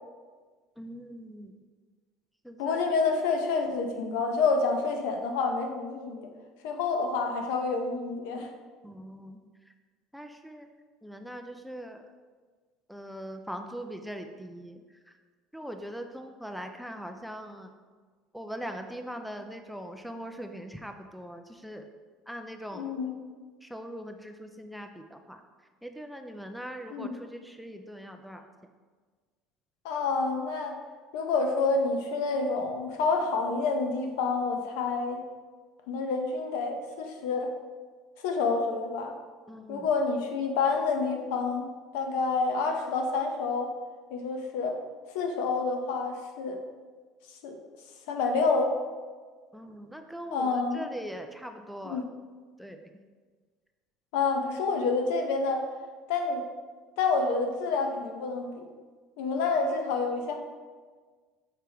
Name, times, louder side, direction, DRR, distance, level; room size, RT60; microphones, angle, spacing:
voice 1, 0.8-1.5 2.4-2.8 8.8-9.4 10.1-10.7 11.0-12.0 12.9-14.8 15.5-17.7 18.3-21.9 22.3-22.8 23.6-25.4 25.8-28.4 39.5-39.9 49.5-52.0 52.6-52.9, equal, ahead, 6 dB, 0.3 m, -41 dB
voice 2, 2.6-6.3 6.6-8.5 22.7-23.2 26.9-27.1 29.8-30.7 31.1-35.2 35.9-37.5 38.2-39.1 39.7-41.7 41.9-43.7 44.1-44.7 45.1-46.6 47.4-47.6 48.1-48.7 50.3-50.8 51.8-52.0 54.1-55.7 56.1-56.4 57.0-58.7 59.2-60.4, left 4 dB, 85° left, 4 dB, 0.8 m, -28 dB
6.0 x 4.6 x 3.4 m, 1.5 s
cardioid pair, 145°, 0 cm